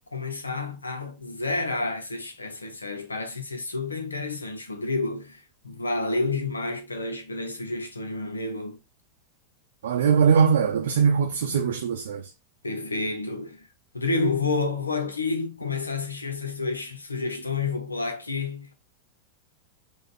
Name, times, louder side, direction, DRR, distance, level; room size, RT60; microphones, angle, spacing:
voice 1, 0.1-8.8 12.6-13.7 13.9-18.9, left 3 dB, 80° left, 0.9 m, -30 dB
voice 2, 9.8-12.3, right 6 dB, 60° right, 0.6 m, -21 dB
5.1 x 2.4 x 4.1 m
figure-of-eight pair, 90°, 0 cm